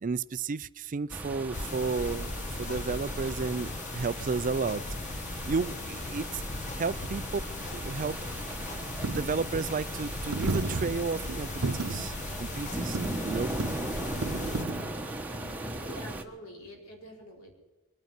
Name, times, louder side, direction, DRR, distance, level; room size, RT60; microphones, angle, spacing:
voice 1, 0.0-2.3 2.6-4.8 5.5-6.4 6.8-7.4 7.7-8.2 9.1-12.1 12.4-13.5, right 4 dB, 35° right, 17 dB, 0.4 m, -32 dB
sound 1, 1.1-16.2, right 1 dB, 10° right, 1.1 m, -38 dB
sound 2, 1.5-14.6, left 3 dB, 35° left, 0.8 m, -38 dB
Coin (dropping), 7.7-16.2, right 3 dB, 85° right, 0.9 m, -36 dB
voice 2, 15.9-17.5, equal, 85° left, 0 dB, 4.4 m, -46 dB
23.0 x 9.4 x 6.6 m, 1.2 s
head